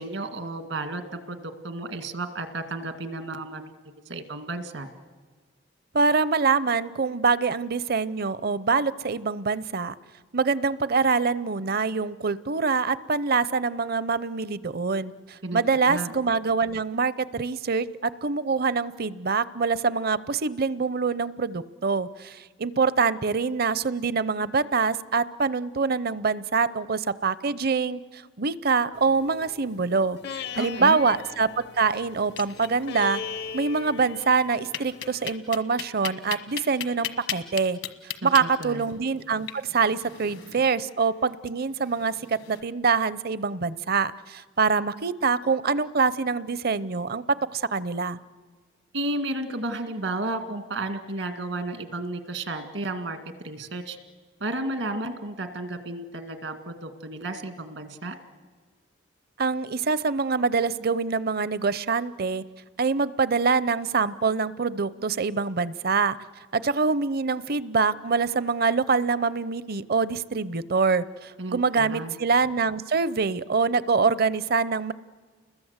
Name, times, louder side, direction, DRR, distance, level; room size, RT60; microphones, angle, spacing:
voice 1, 0.0-3.7 4.1-4.9 15.4-16.1 30.6-31.0 38.2-38.8 48.9-53.2 53.4-54.0 54.4-58.2 71.4-72.2, right 2 dB, 80° right, 8 dB, 1.9 m, -33 dB
voice 2, 5.9-9.9 10.3-33.2 33.5-37.8 38.2-48.2 59.4-62.4 62.8-66.2 66.5-74.9, right 4 dB, 55° right, 17 dB, 0.7 m, -25 dB
sound 1, 28.9-35.4, left 6 dB, 60° left, 0.7 m, -39 dB
sound 2, 32.2-33.1 33.4-33.5 33.8-33.9 34.7-42.6, left 9 dB, 75° left, 1.4 m, -36 dB
30.0 x 21.0 x 8.1 m, 1.5 s
head